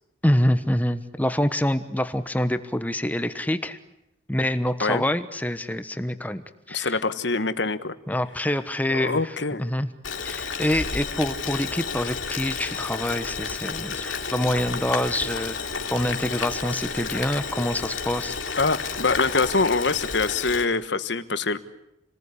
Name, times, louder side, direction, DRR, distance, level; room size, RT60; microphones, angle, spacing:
voice 1, 0.2-3.8 4.3-7.0 8.1-9.9 10.2-15.6 15.9-18.4, left 1 dB, 10° left, 11 dB, 1.1 m, -26 dB
voice 2, 6.7-7.9 8.9-9.6 18.6-21.6, left 3 dB, 65° left, 12 dB, 1.4 m, -24 dB
Boiling, 10.0-20.6, left 5 dB, 90° left, 3.2 m, -31 dB
29.5 x 20.0 x 9.9 m, 0.88 s
head